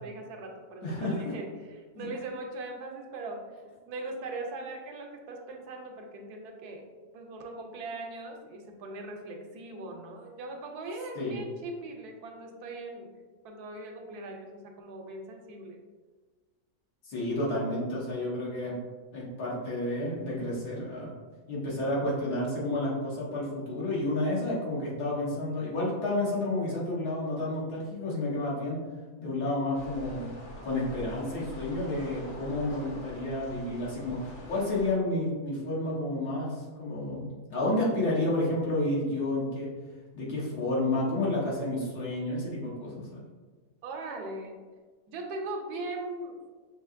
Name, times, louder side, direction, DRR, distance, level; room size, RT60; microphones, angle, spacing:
voice 1, 0.0-1.5 1.8-3.5 3.9-6.8 7.1-13.1 13.4-15.8 43.8-44.6 45.1-46.4, right 2 dB, 85° right, 2 dB, 1.1 m, -39 dB
voice 2, 0.8-1.2 1.9-2.1 11.1-11.4 17.1-18.7 19.1-21.1 21.5-28.8 29.2-30.3 30.6-39.7 40.1-43.2, left 1 dB, 85° left, -6 dB, 1.7 m, -30 dB
sound 1, 29.7-35.0, left 1 dB, 65° left, 1.2 m, -45 dB
5.4 x 2.8 x 2.4 m, 1.4 s
omnidirectional pair, 1.6 m